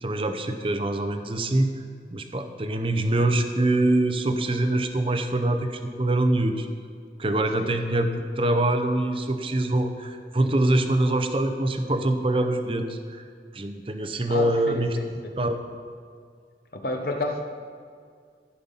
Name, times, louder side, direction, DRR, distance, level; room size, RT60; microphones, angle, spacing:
voice 1, 0.0-1.7 2.1-6.7 7.2-13.2 13.5-15.6, right 1 dB, 30° right, 7 dB, 0.7 m, -24 dB
voice 2, 14.3-15.3 16.7-17.4, left 2 dB, 55° left, 4 dB, 1.0 m, -30 dB
15.0 x 5.6 x 5.6 m, 2.1 s
head